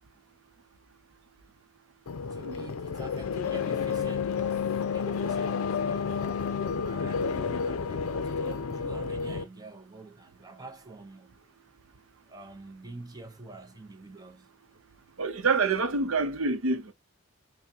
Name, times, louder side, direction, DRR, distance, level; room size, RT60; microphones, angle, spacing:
sound 1, 2.1-9.4, left 6 dB, 85° left, 0.5 m, -30 dB
voice 1, 2.3-6.2 6.8-11.3 12.3-14.5, right 2 dB, 20° right, 0.6 m, -46 dB
voice 2, 15.2-16.9, right 4 dB, 75° right, 0.7 m, -27 dB
5.8 x 2.1 x 2.7 m
head